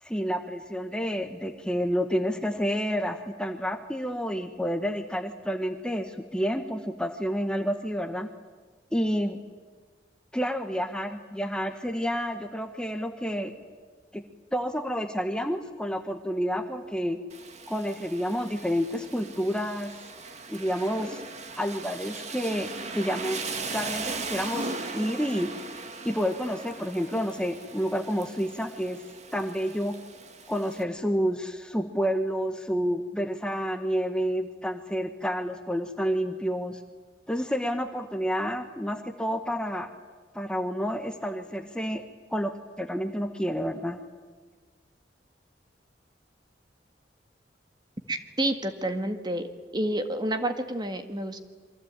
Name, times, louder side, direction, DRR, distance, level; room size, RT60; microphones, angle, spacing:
voice 1, 0.0-8.3 8.9-9.4 10.3-13.5 14.1-14.2 14.5-17.2 17.7-19.9 20.5-21.2 21.6-23.4 23.7-25.5 26.0-29.0 29.3-29.9 30.5-36.8 37.3-39.9 40.3-42.0 42.3-44.0, equal, 5° left, 6 dB, 1.3 m, -29 dB
Rain, 17.3-30.8, right 3 dB, 40° right, 2.1 m, -39 dB
voice 2, 48.1-49.5 49.7-51.4, right 1 dB, 25° right, 7 dB, 1.7 m, -29 dB
28.0 x 23.5 x 8.9 m, 1.4 s
head